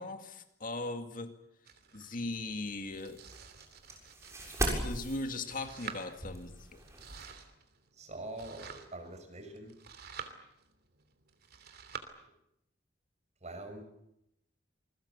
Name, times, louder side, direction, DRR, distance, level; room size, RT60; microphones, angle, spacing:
voice 1, 0.0-1.3 1.9-3.2 4.8-6.8, left 2 dB, 50° left, 2.2 m, -39 dB
Domestic sounds home sounds, 1.6-12.0, right 6 dB, 60° right, 3.0 m, -50 dB
sound 1, 2.3-7.3, right 1 dB, 15° right, 7.0 m, -39 dB
voice 2, 7.9-9.7 13.4-13.8, right 2 dB, 40° right, 6.1 m, -44 dB
27.0 x 21.5 x 8.2 m
head